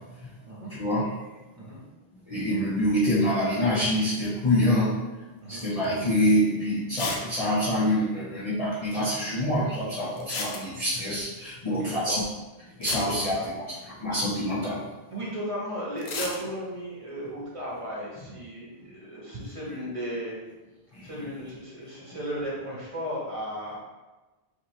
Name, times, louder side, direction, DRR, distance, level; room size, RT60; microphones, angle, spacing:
voice 1, 0.7-1.1 2.3-4.9 5.5-12.2 12.8-14.8 21.0-21.1, left 1 dB, 35° left, -9 dB, 0.9 m, -26 dB
sound 1, 5.6-5.9 6.3-6.4 7.0-7.3 7.6-7.7 7.8-7.9 10.2-11.0 12.4-12.5 12.8-14.0 16.0-16.4, left 3 dB, 75° left, 0.9 m, -33 dB
voice 2, 11.7-12.2 13.1-13.5 15.1-20.4 21.0-23.8, equal, 30° right, -6 dB, 1.3 m, -35 dB
5.3 x 2.8 x 3.2 m, 1.2 s
omnidirectional pair, 1.1 m